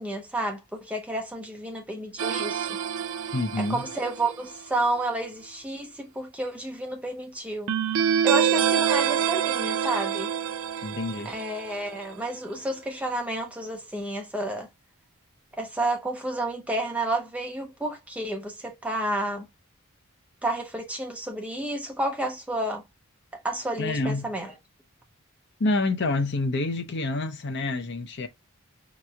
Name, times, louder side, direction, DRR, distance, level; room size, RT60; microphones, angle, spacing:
voice 1, 0.0-2.7 3.6-7.7 8.2-10.3 11.2-14.7 15.6-19.5 20.4-22.8 23.3-24.5, right 1 dB, 5° right, 0.7 m, -30 dB
sound 1, 2.2-4.5 7.7-12.1, right 8 dB, 60° right, 0.4 m, -26 dB
voice 2, 3.3-3.9 10.8-11.3 23.8-24.3 25.6-28.3, left 2 dB, 50° left, 0.6 m, -27 dB
5.2 x 3.0 x 2.3 m
head